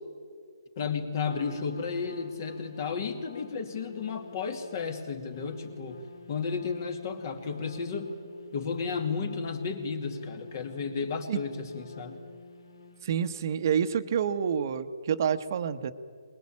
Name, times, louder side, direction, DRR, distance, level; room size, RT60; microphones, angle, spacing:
voice 1, 0.8-8.1 8.5-12.2, left 5 dB, 45° left, 7 dB, 2.5 m, -33 dB
Trumpet, 1.2-13.4, left 3 dB, 75° left, 2.4 m, -48 dB
voice 2, 13.0-15.9, right 7 dB, 45° right, 10 dB, 1.0 m, -28 dB
22.0 x 21.0 x 8.6 m, 2.1 s
hypercardioid pair, 155°, 2 cm